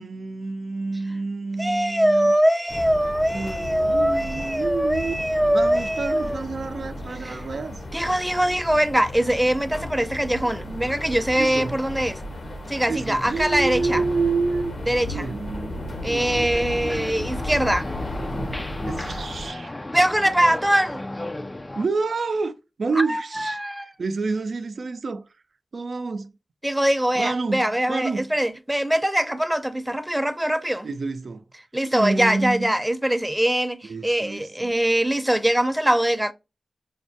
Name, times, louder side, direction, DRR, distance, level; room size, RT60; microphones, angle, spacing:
voice 1, 0.0-2.3 3.3-5.1 5.5-7.8 11.4-11.8 12.9-14.7 15.1-16.4 18.8-19.8 21.8-22.5 22.8-23.6 24.0-25.2 25.7-26.3 27.2-28.3 30.8-31.4 31.8-32.7 33.8-34.7, right 4 dB, 75° right, 0.5 m, -28 dB
voice 2, 1.6-6.4 7.2-7.4 7.9-12.2 12.7-14.0 14.9-15.3 16.0-17.9 19.9-21.0 23.0-23.9 26.6-30.9 31.7-36.3, right 1 dB, 10° right, 0.6 m, -22 dB
sound 1, 2.7-19.5, left 1 dB, 80° left, 1.4 m, -34 dB
sound 2, 16.2-21.9, left 1 dB, 25° left, 0.3 m, -35 dB
6.3 x 2.1 x 2.7 m
cardioid pair, 45°, 0 cm